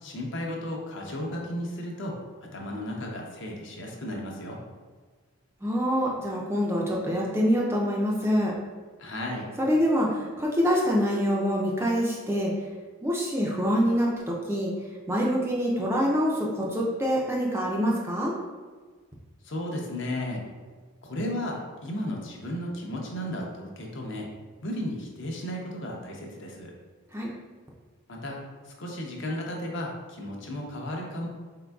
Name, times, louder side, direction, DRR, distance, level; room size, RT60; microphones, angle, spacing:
voice 1, 0.0-2.2 2.4-4.6 9.0-9.5 19.4-20.4 21.0-24.3 24.6-26.7 28.1-31.3, left 1 dB, 55° left, -1 dB, 0.7 m, -34 dB
voice 2, 5.6-8.5 9.6-12.5 13.0-14.7 15.1-18.3 27.1-27.3, equal, 10° right, -3 dB, 0.4 m, -25 dB
4.4 x 3.8 x 2.3 m, 1.4 s
head